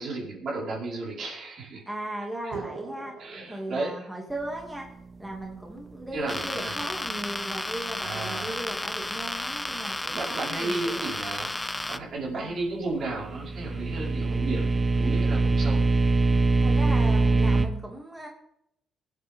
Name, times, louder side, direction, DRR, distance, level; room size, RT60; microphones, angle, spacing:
voice 1, 0.0-1.8 3.2-4.1 6.1-6.8 8.0-8.6 10.1-11.5 11.9-15.8, right 2 dB, 60° right, -4 dB, 5.1 m, -33 dB
voice 2, 1.9-3.1 3.5-4.9 5.2-11.2 12.3-12.5 16.6-18.3, right 1 dB, 10° right, -1 dB, 2.7 m, -37 dB
sound 1, 2.5-4.5, right 4 dB, 90° right, 3.2 m, -41 dB
sound 2, 6.3-12.0, left 2 dB, 10° left, 0.5 m, -33 dB
sound 3, 13.1-17.7, right 3 dB, 25° right, 0.9 m, -23 dB
22.5 x 8.4 x 3.8 m, 0.75 s
cardioid pair, 90°, 0 cm